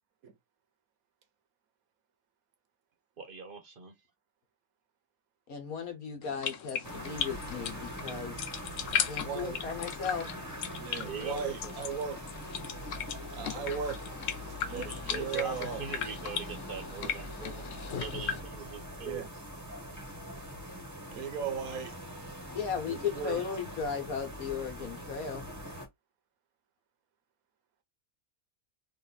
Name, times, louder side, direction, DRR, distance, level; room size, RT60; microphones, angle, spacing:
voice 1, 3.2-3.9 11.0-11.7 14.7-17.7 17.9-19.2, right 5 dB, 45° right, 0.9 m, -41 dB
voice 2, 5.5-8.3 8.9-10.3 22.5-25.5, left 6 dB, 85° left, 1.7 m, -36 dB
sound 1, 6.2-18.4, left 8 dB, 65° left, 1.0 m, -38 dB
sound 2, 6.8-25.9, equal, 15° right, 0.9 m, -43 dB
voice 3, 9.2-9.6 10.8-12.2 13.3-14.0 14.7-15.8 19.0-19.3 21.1-21.9 22.9-23.4, right 6 dB, 80° right, 1.4 m, -37 dB
3.8 x 2.6 x 4.0 m
omnidirectional pair, 1.5 m